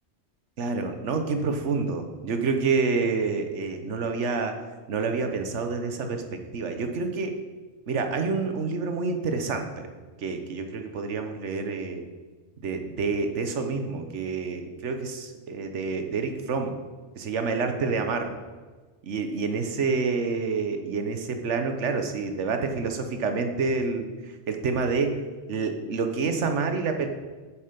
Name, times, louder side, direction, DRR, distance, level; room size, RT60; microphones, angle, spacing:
voice 1, 0.6-4.6 4.9-7.4 7.9-9.9 10.2-12.0 12.6-16.7 17.2-18.3 19.0-24.0 24.5-25.2 25.5-27.1, right 4 dB, 80° right, 6 dB, 1.3 m, -28 dB
8.3 x 7.3 x 5.2 m, 1.3 s
omnidirectional pair, 1.2 m